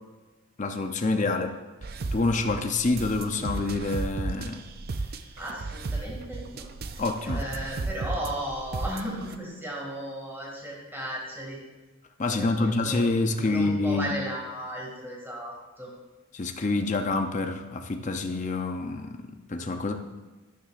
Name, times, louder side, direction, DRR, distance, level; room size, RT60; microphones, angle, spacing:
voice 1, 0.6-1.6 2.1-4.6 7.0-7.4 12.2-14.1 16.3-19.9, left 3 dB, 35° left, 5 dB, 0.6 m, -27 dB
sound 1, 1.8-9.4, right 3 dB, 45° right, 0.5 m, -34 dB
voice 2, 5.4-11.6 12.3-15.9, right 1 dB, 10° right, -3 dB, 2.3 m, -36 dB
12.0 x 10.0 x 2.5 m, 1.2 s
head